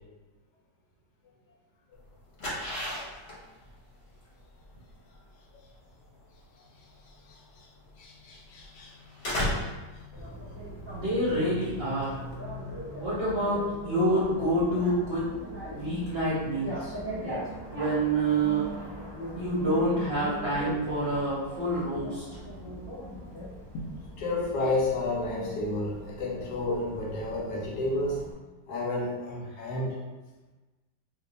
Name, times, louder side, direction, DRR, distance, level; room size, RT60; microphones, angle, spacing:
sound 1, 1.9-12.4, left 1 dB, 45° left, 0.9 m, -37 dB
voice 1, 7.3-7.7 8.0-8.9 9.3-9.7 23.7-23.8 24.2-28.3 28.7-30.0, left 2 dB, 70° left, -1 dB, 1.1 m, -31 dB
Bicycle, 10.1-28.3, equal, 20° left, 0.8 m, -40 dB
voice 2, 10.9-12.2 13.0-15.2 15.7-16.9 17.7-18.7 19.4-22.2, right 1 dB, 50° right, -9 dB, 0.8 m, -27 dB
2.7 x 2.5 x 3.9 m, 1.2 s
omnidirectional pair, 1.9 m